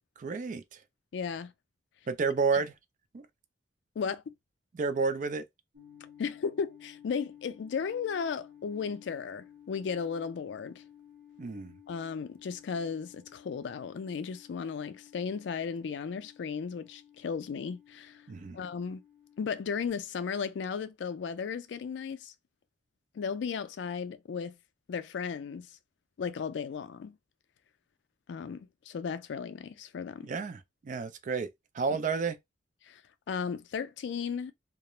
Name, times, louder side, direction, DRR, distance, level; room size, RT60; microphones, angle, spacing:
voice 1, 0.2-0.6 2.1-2.7 3.1-3.2 4.7-5.4 11.4-11.7 18.3-18.6 30.2-31.5 31.7-32.4, right 5 dB, 45° right, 0.3 m, -30 dB
voice 2, 1.1-1.5 2.5-2.6 4.0-4.2 6.2-10.8 11.9-18.2 18.5-19.0 19.4-22.3 23.1-24.5 24.9-25.7 26.2-27.2 28.3-30.3 32.9-33.0 33.3-34.5, left 6 dB, 75° left, 0.3 m, -35 dB
sound 1, 5.7-19.9, left 10 dB, 65° right, 0.9 m, -55 dB
2.4 x 2.0 x 2.9 m
head